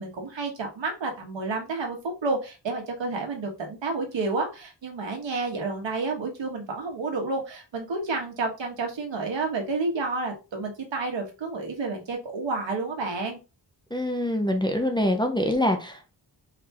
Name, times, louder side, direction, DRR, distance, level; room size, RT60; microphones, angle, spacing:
voice 1, 0.0-13.4, right 3 dB, 80° right, 1.6 m, -30 dB
voice 2, 13.9-16.1, left 1 dB, 10° left, 0.6 m, -25 dB
4.8 x 3.5 x 2.9 m
wide cardioid pair, 130°, 44 cm